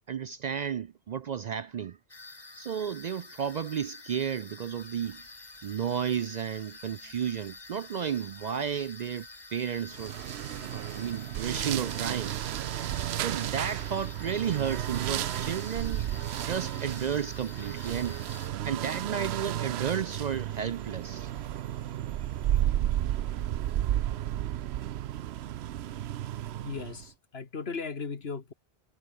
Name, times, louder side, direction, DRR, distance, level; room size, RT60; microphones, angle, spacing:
voice 1, 0.1-2.0 2.6-5.2 5.6-10.2 10.6-12.3 13.1-16.1 16.4-18.2 18.6-21.3, right 8 dB, 55° right, 0.5 m, -33 dB
sound 1, 2.1-18.5, left 3 dB, 25° left, 1.3 m, -48 dB
sound 2, 4.8-22.6, right 1 dB, 20° right, 6.2 m, -61 dB
sound 3, 9.9-27.1, right 12 dB, 80° right, 0.9 m, -33 dB
voice 2, 26.6-28.5, left 4 dB, 75° left, 1.9 m, -37 dB
omnidirectional pair, 1.1 m